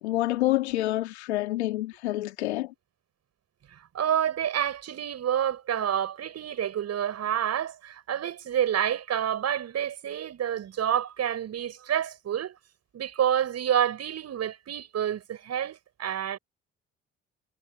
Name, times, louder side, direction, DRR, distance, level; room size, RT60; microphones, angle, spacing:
voice 1, 0.0-2.7, left 16 dB, 85° left, 2.4 m, -27 dB
voice 2, 3.7-12.6 12.9-16.4, right 10 dB, 50° right, 7.0 m, -28 dB
hypercardioid pair, 55°, 32 cm